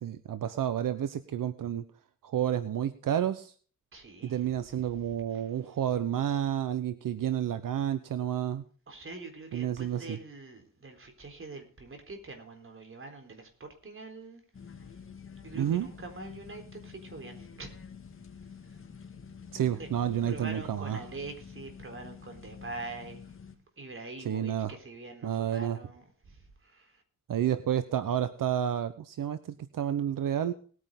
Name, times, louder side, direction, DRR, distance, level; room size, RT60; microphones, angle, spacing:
voice 1, 0.0-1.8 2.2-3.5 4.2-8.6 9.5-10.2 15.5-15.9 19.5-21.0 24.2-24.7 25.2-25.8 27.3-30.5, right 10 dB, 85° right, 12 dB, 0.9 m, -30 dB
voice 2, 3.9-4.4 8.9-14.4 15.4-17.7 19.8-19.9 20.3-23.2 23.8-27.0, right 3 dB, 40° right, 5 dB, 3.9 m, -44 dB
sound 1, 14.5-23.5, left 6 dB, 40° left, 2.0 m, -48 dB
19.5 x 9.7 x 3.8 m, 0.42 s
wide cardioid pair, 115°, 32 cm